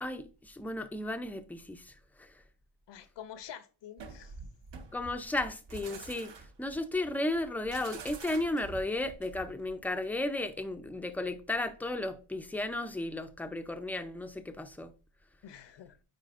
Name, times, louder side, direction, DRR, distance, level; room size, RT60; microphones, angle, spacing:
voice 1, 0.0-2.4 4.9-6.3 6.6-14.9, left 2 dB, 5° left, 0.5 m, -34 dB
voice 2, 2.9-4.4 15.4-16.0, left 9 dB, 60° left, 0.8 m, -47 dB
sound 1, 4.0-9.7, right 4 dB, 60° right, 1.3 m, -47 dB
9.1 x 4.5 x 2.5 m
cardioid pair, 95°, 49 cm